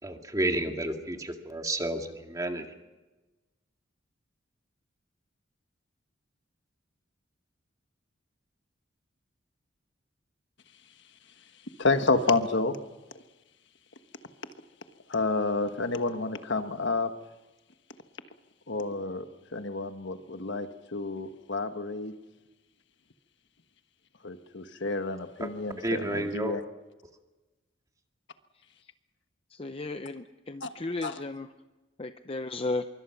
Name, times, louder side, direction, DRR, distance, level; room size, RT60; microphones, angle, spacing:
voice 1, 0.0-2.7 25.4-25.5 25.8-26.6, right 1 dB, 20° right, 4 dB, 2.1 m, -31 dB
voice 2, 11.8-12.8 15.1-17.1 18.7-19.3 19.5-22.1 24.2-26.6 30.6-30.7 31.0-31.2, left 3 dB, 65° left, 8 dB, 1.4 m, -29 dB
voice 3, 29.6-31.5 32.0-32.9, left 2 dB, 30° left, 9 dB, 0.7 m, -34 dB
25.0 x 23.5 x 5.9 m, 1.1 s
head